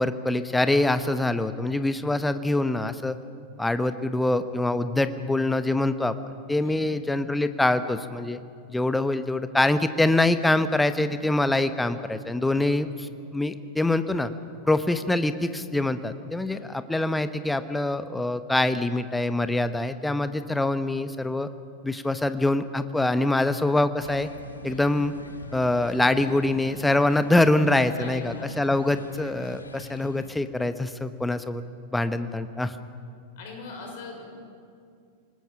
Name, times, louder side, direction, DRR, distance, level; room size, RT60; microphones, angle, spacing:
voice 1, 0.0-3.2 3.6-6.1 6.5-8.4 8.7-12.9 13.3-14.3 14.7-21.5 21.8-24.3 24.6-25.1 25.5-31.6 31.9-32.7, left 2 dB, 5° left, 11 dB, 0.9 m, -24 dB
voice 2, 6.6-6.9 12.4-12.7 16.5-16.8 24.6-24.9 28.0-28.5 32.5-32.6 33.4-34.3, left 3 dB, 50° left, 1 dB, 5.6 m, -42 dB
sound 1, 24.0-30.3, left 2 dB, 80° left, 1.5 m, -44 dB
27.0 x 19.5 x 5.7 m, 2.3 s
figure-of-eight pair, 90°, 0 cm